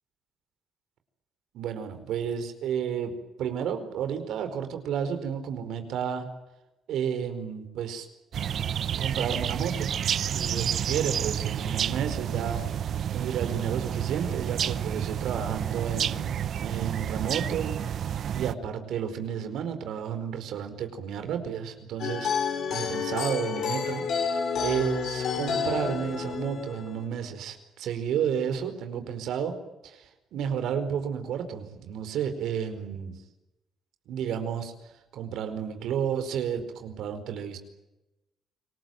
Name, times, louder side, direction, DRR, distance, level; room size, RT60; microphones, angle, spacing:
voice 1, 1.5-6.3 6.9-8.1 8.9-9.9 10.3-12.7 13.1-16.3 16.6-17.8 18.3-22.4 22.7-24.0 24.6-29.6 29.8-33.1 34.1-34.7 35.1-37.6, right 8 dB, 80° right, 8 dB, 4.7 m, -31 dB
sound 1, 8.3-18.5, right 9 dB, 65° right, 0.8 m, -30 dB
sound 2, 22.0-27.0, left 6 dB, 70° left, 6.9 m, -30 dB
28.5 x 20.0 x 9.2 m, 0.99 s
cardioid pair, 90°, 0 cm